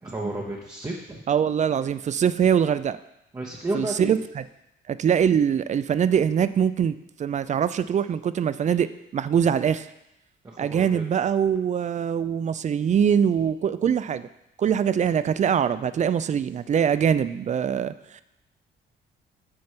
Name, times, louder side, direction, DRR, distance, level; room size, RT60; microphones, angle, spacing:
voice 1, 0.0-1.2 3.3-4.1 10.4-11.0, right 2 dB, 20° right, -2 dB, 0.9 m, -32 dB
voice 2, 1.3-3.0 3.7-4.4 4.9-6.9 7.2-9.9 10.6-14.3 14.6-18.2, right 8 dB, 35° right, 15 dB, 0.4 m, -23 dB
6.3 x 4.4 x 5.9 m, 0.86 s
cardioid pair, 90°, 20 cm